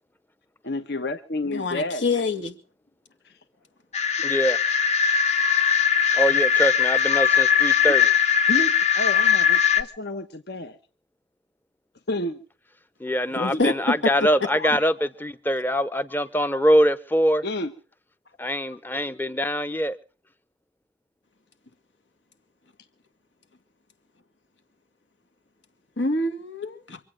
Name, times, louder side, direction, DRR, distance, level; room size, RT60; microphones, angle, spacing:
voice 1, 0.6-2.0 3.2-3.3 5.7-5.8 7.2-8.0 8.5-10.8 12.1-12.4 13.5-13.6 14.5-15.1 17.4-17.7, left 1 dB, 60° left, 1.1 m, -31 dB
voice 2, 1.5-2.6 6.3-6.4 13.3-14.1 26.0-27.0, left 3 dB, 85° left, 2.3 m, -26 dB
sound 1, 3.9-9.8, left 8 dB, 40° left, 1.1 m, -20 dB
voice 3, 4.2-4.6 6.2-8.0 13.0-17.4 18.4-20.0, equal, 10° left, 0.8 m, -23 dB
25.5 x 8.5 x 6.3 m
head